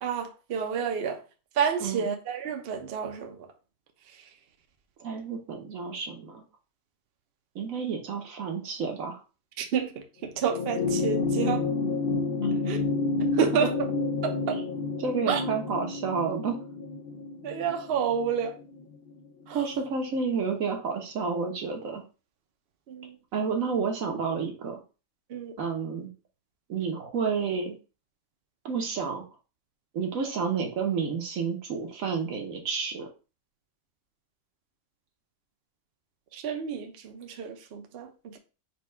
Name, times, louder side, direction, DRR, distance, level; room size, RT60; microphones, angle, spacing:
voice 1, 0.0-1.2 1.6-3.5 9.6-9.9 10.2-11.7 12.7-12.8 13.3-13.7 14.2-14.6 15.3-15.4 17.4-18.5 19.5-19.7 22.9-23.2 25.3-25.5 36.3-38.4, right 7 dB, 55° right, 0.7 m, -29 dB
voice 2, 5.0-6.4 7.5-9.2 12.4-12.5 15.0-16.6 19.5-22.0 23.3-24.8 25.6-26.1 26.7-27.7 28.6-29.2 29.9-33.1, right 5 dB, 75° right, 1.3 m, -30 dB
sound 1, 10.4-19.1 20.3-20.4, left 3 dB, 65° left, 0.6 m, -30 dB
4.3 x 2.3 x 4.4 m
omnidirectional pair, 1.4 m